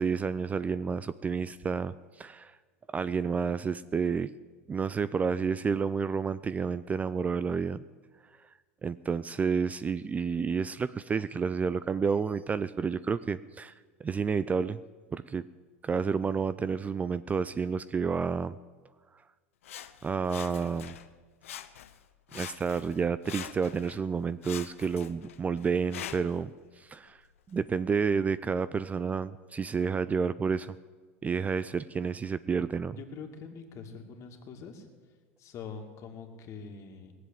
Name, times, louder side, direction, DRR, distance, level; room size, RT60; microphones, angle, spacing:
voice 1, 0.0-2.6 2.9-4.3 4.7-7.8 8.8-13.7 14.0-14.8 15.1-15.5 15.8-18.6 20.0-20.9 22.3-26.5 26.8-27.2 27.5-30.8 31.2-33.0, right 5 dB, 20° right, 15 dB, 0.4 m, -30 dB
Sawing, 19.6-21.1 21.4-22.0 22.3-24.0 24.4-26.4 27.1-27.2, left 10 dB, 75° left, 0.8 m, -44 dB
voice 2, 33.0-34.9 35.4-37.1, left 5 dB, 45° left, 4 dB, 2.5 m, -44 dB
19.0 x 7.7 x 9.1 m, 1.5 s
hypercardioid pair, 85°, 7 cm